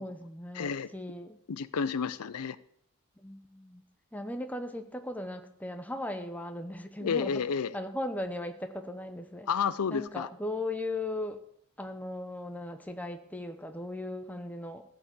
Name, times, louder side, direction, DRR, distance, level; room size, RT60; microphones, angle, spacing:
voice 1, 0.0-1.4 3.2-3.8 4.1-7.4 7.7-9.5 9.9-11.4 11.8-14.8, left 1 dB, 5° left, 7 dB, 0.8 m, -37 dB
voice 2, 0.5-0.9 1.5-2.6 7.0-7.7 9.5-10.3, left 6 dB, 85° left, 16 dB, 0.5 m, -31 dB
14.5 x 5.0 x 8.0 m, 0.70 s
head